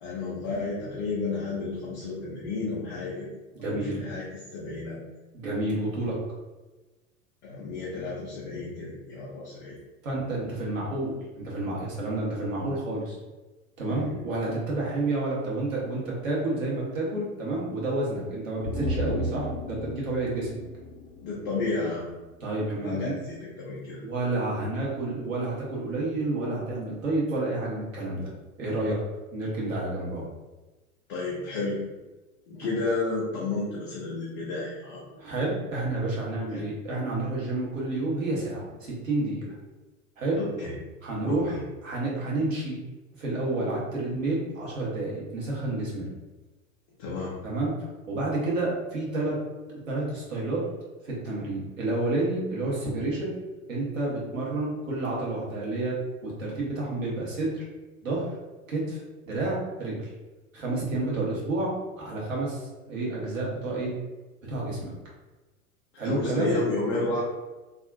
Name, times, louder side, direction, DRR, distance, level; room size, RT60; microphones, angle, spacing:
voice 1, 0.0-3.3 3.6-4.3 4.5-5.0 7.4-9.8 13.9-14.2 21.2-22.0 22.8-24.0 31.1-31.8 32.5-35.0 36.5-36.6 40.4-40.7 41.2-41.6 47.0-47.3 66.0-67.2, left 3 dB, 25° left, -6 dB, 0.3 m, -31 dB
voice 2, 3.5-4.0 5.3-6.2 10.0-13.2 13.8-20.5 22.4-23.1 24.0-28.3 28.6-29.0 29.3-30.3 35.1-39.5 40.2-40.4 41.0-41.6 41.8-42.8 43.2-46.1 47.4-49.4 49.7-50.6 51.0-53.3 53.7-55.9 56.2-57.6 58.0-58.3 58.7-60.1 60.5-61.7 62.0-63.9 64.5-64.9 66.0-66.5, right 2 dB, 65° right, -5 dB, 1.3 m, -30 dB
sound 1, 18.6-22.0 22.3-22.4, left 1 dB, 70° left, 0.6 m, -34 dB
2.7 x 2.4 x 2.4 m, 1.2 s
figure-of-eight pair, 90°, 42 cm